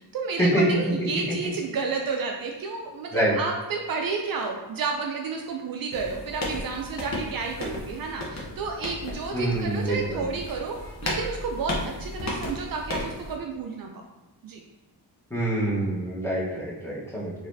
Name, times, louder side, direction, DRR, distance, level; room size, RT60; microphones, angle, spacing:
voice 1, 0.0-10.8 11.0-13.9 14.4-14.6, right 4 dB, 55° right, 1 dB, 0.5 m, -31 dB
sound 1, 5.9-13.4, left 1 dB, 40° left, 0.8 m, -35 dB
voice 2, 9.3-10.2 15.3-17.3, right 1 dB, 5° left, -7 dB, 1.1 m, -26 dB
4.0 x 3.1 x 2.6 m, 1.1 s
wide cardioid pair, 140°, 42 cm